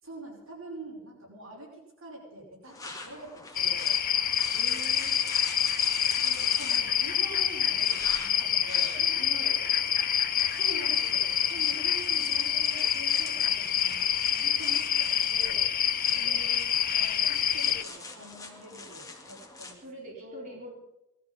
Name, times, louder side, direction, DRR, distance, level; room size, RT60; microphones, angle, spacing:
voice 1, 0.0-3.9 6.2-9.3 10.5-15.6 16.1-16.4 16.9-20.5, right 1 dB, 70° right, -1 dB, 5.5 m, -46 dB
sound 1, 2.7-19.7, left 3 dB, 15° left, 2.2 m, -45 dB
sound 2, 3.6-17.8, left 9 dB, 45° left, 0.8 m, -27 dB
voice 2, 4.5-5.2 9.0-10.1 16.1-16.7 19.2-19.4 19.8-20.7, right 1 dB, 40° right, -4 dB, 4.4 m, -46 dB
19.0 x 13.5 x 5.6 m, 0.93 s
head